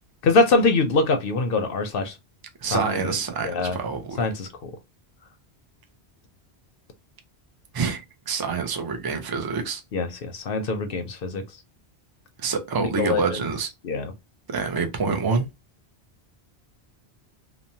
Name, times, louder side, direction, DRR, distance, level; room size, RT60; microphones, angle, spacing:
voice 1, 0.2-2.2 2.7-3.2 3.4-3.8 4.2-4.7 9.9-11.4 12.8-13.4 13.8-14.1, left 3 dB, 65° left, 0.7 m, -23 dB
voice 2, 2.6-4.2 7.7-9.8 12.4-13.7 14.5-15.5, right 5 dB, 35° right, 0.4 m, -27 dB
2.9 x 2.0 x 2.6 m
omnidirectional pair, 1.1 m